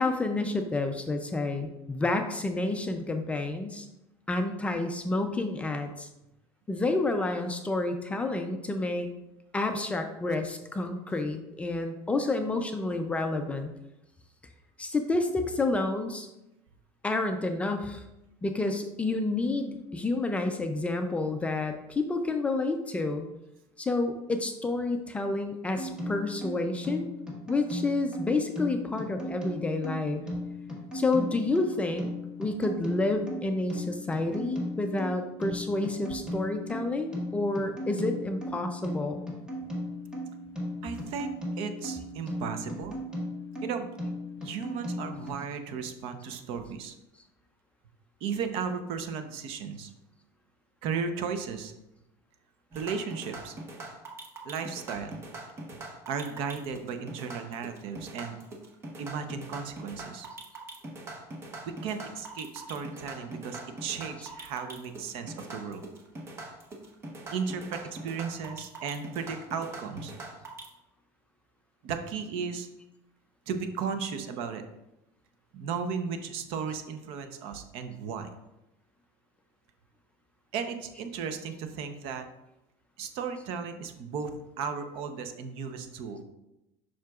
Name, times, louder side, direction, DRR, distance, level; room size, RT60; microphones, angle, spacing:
voice 1, 0.0-3.9 4.3-6.1 6.7-9.1 9.5-13.7 14.8-16.3 17.0-18.0 18.4-23.2 23.8-27.1 27.5-30.2 30.9-32.1 32.4-39.2, left 2 dB, 10° left, 6 dB, 0.4 m, -29 dB
sound 1, 25.8-45.3, left 1 dB, 5° right, 1.3 m, -37 dB
voice 2, 40.8-41.3 41.6-43.0 43.6-43.9 44.4-46.9 48.2-49.9 50.8-51.7 52.7-53.5 54.4-55.2 56.1-58.4 59.0-60.3 61.7-65.8 67.3-70.1 71.8-72.7 73.5-74.6 75.5-78.3 80.5-82.3 83.0-86.2, right 6 dB, 55° right, 8 dB, 0.7 m, -35 dB
sound 2, 52.7-70.7, right 2 dB, 20° right, 0.9 m, -42 dB
7.5 x 5.7 x 2.3 m, 0.91 s
cardioid pair, 160°, 11 cm